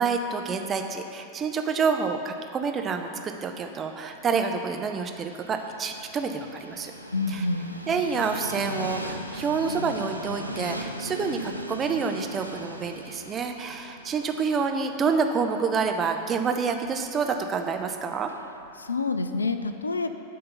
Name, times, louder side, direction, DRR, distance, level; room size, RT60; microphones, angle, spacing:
voice 1, 0.0-6.9 7.3-7.4 7.9-18.3, right 5 dB, 25° right, 5 dB, 0.7 m, -28 dB
Train, 2.9-19.0, equal, 90° right, 0.5 m, -40 dB
voice 2, 7.1-7.7 18.8-20.1, left 3 dB, 75° left, 9 dB, 0.4 m, -27 dB
10.5 x 3.8 x 6.9 m, 2.5 s
figure-of-eight pair, 90°, 0 cm